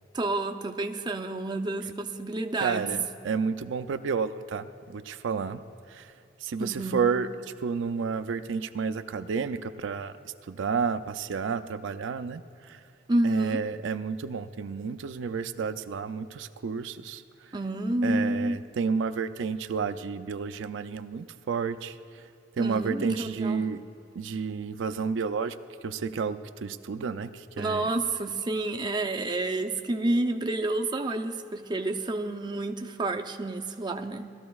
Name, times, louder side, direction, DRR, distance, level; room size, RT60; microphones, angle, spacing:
voice 1, 0.1-2.9 6.6-7.1 13.1-13.6 17.5-18.6 22.6-23.7 27.6-34.3, right 2 dB, 25° right, 5 dB, 0.5 m, -29 dB
voice 2, 2.6-5.6 5.9-6.1 6.4-7.3 7.6-12.8 13.2-17.5 18.0-22.2 22.6-23.8 24.1-25.6 25.8-27.9, right 5 dB, 75° right, 10 dB, 0.4 m, -31 dB
19.5 x 13.5 x 2.3 m, 2.7 s
head